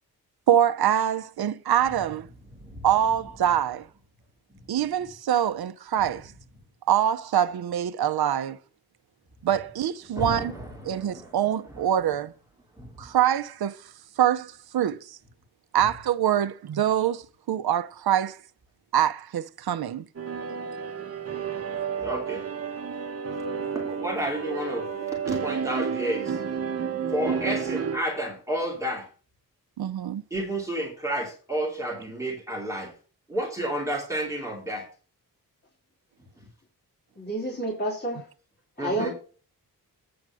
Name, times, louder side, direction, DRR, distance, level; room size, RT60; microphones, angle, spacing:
voice 1, 0.5-2.3 2.8-3.9 4.7-6.3 6.9-8.6 9.4-10.5 10.8-12.3 13.0-13.8 14.2-15.2 15.7-17.2 17.5-18.4 18.9-20.0 29.8-30.2, right 10 dB, 80° right, 0.7 m, -24 dB
voice 2, 10.2-11.3 12.8-12.9 21.9-22.5 23.5-24.9 25.3-26.4 27.1-29.1 30.3-32.9 33.3-34.9 38.8-39.1, right 1 dB, 10° right, 2.8 m, -31 dB
sound 1, 20.2-28.0, right 6 dB, 40° right, 1.1 m, -31 dB
voice 3, 37.2-38.2 38.8-39.1, right 1 dB, 25° left, 3.8 m, -29 dB
8.7 x 4.8 x 6.3 m
wide cardioid pair, 150°, 37 cm